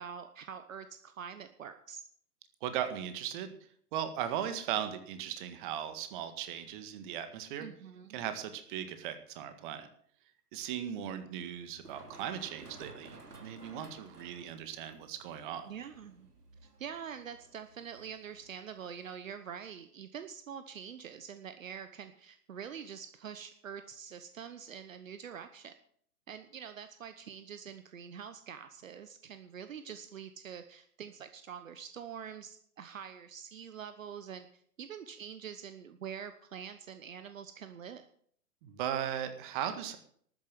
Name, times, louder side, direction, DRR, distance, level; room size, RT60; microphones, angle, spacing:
voice 1, 0.0-2.0 7.6-8.2 15.6-16.3 16.8-25.7 26.3-38.1, right 8 dB, 55° right, 10 dB, 1.2 m, -45 dB
voice 2, 2.6-3.5 3.9-7.7 8.1-9.9 10.5-15.7 38.6-40.0, right 10 dB, 30° right, 10 dB, 1.8 m, -37 dB
Run, 11.6-19.1, right 3 dB, 75° right, 2.9 m, -55 dB
13.0 x 9.4 x 7.6 m, 0.62 s
figure-of-eight pair, 120°, 46 cm